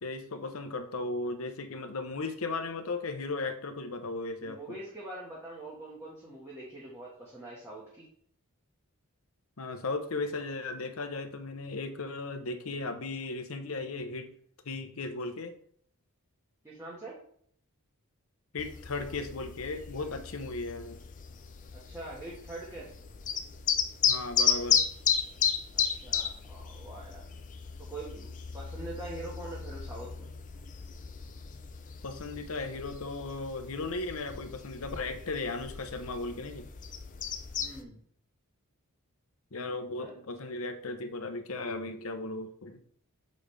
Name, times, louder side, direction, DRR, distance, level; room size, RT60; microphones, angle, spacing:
voice 1, 0.0-4.8 9.6-14.3 14.6-15.6 18.5-21.0 24.1-24.8 32.0-36.7 39.5-42.8, left 3 dB, 65° left, 7 dB, 0.8 m, -36 dB
voice 2, 4.4-8.0 16.6-17.1 21.7-22.9 25.7-27.2 27.9-30.3 37.6-38.0 40.0-40.2, right 2 dB, 15° right, -7 dB, 1.4 m, -44 dB
sound 1, 18.6-37.8, left 7 dB, 35° left, 0.5 m, -34 dB
7.0 x 5.1 x 3.3 m, 0.62 s
head